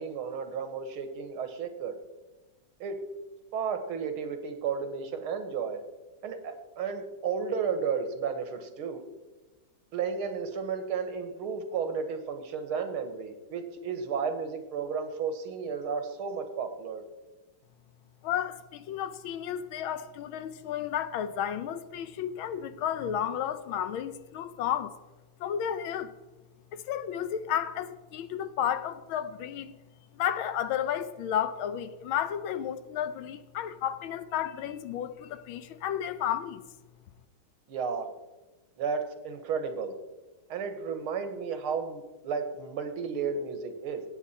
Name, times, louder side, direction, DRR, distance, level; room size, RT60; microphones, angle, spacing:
voice 1, 0.0-2.0 2.8-3.0 3.5-5.8 6.2-9.0 9.9-17.0 37.7-38.1 38.8-40.0 40.5-44.0, right 6 dB, 80° right, 2.1 m, -33 dB
voice 2, 18.2-24.9 25.4-26.1 26.7-29.8 30.1-36.6, left 9 dB, 75° left, 1.5 m, -32 dB
16.5 x 9.0 x 4.2 m
omnidirectional pair, 2.3 m